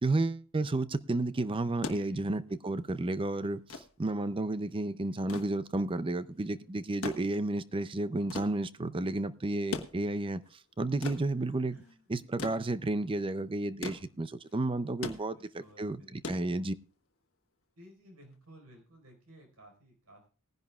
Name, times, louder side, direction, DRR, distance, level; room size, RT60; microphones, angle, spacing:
voice 1, 0.0-10.4 10.8-11.8 12.1-16.7, right 2 dB, 25° right, 0.5 m, -32 dB
sound 1, 1.6-17.1 18.3-18.4, left 3 dB, 70° left, 1.3 m, -43 dB
voice 2, 1.9-2.3 11.4-12.0 15.2-16.5 17.8-20.3, equal, 80° right, 4.5 m, -57 dB
20.0 x 10.5 x 2.4 m
head